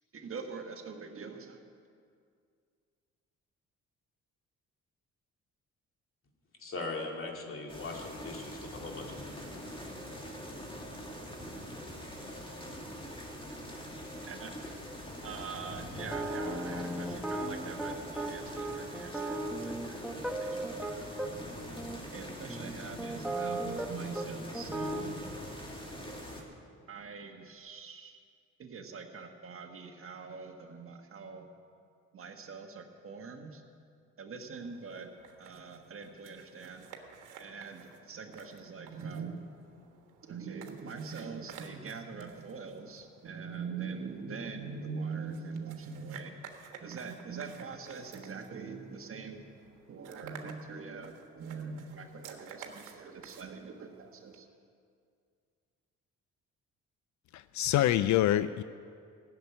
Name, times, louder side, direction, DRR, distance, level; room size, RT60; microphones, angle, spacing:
voice 1, 0.1-1.7 13.5-13.8 14.3-14.9 15.2-21.1 22.1-25.2 26.9-28.2 28.6-31.5 32.1-33.6 34.2-35.1 35.4-36.9 37.4-39.5 40.2-46.4 46.8-49.5 49.9-54.5, right 5 dB, 45° right, 4 dB, 1.6 m, -43 dB
voice 2, 6.6-9.2, left 3 dB, 45° left, 1 dB, 2.4 m, -39 dB
sound 1, 7.7-26.4, equal, 15° left, 2.5 m, -44 dB
sound 2, 16.0-21.3 21.8-22.0 22.5-23.9 24.1-24.3 24.5-25.1, right 1 dB, 5° right, 1.3 m, -36 dB
sound 3, 34.5-54.4, right 7 dB, 90° right, 1.4 m, -53 dB
voice 3, 57.3-58.6, left 13 dB, 70° left, 14 dB, 0.4 m, -26 dB
15.0 x 7.3 x 9.7 m, 2.3 s
cardioid pair, 90°, 30 cm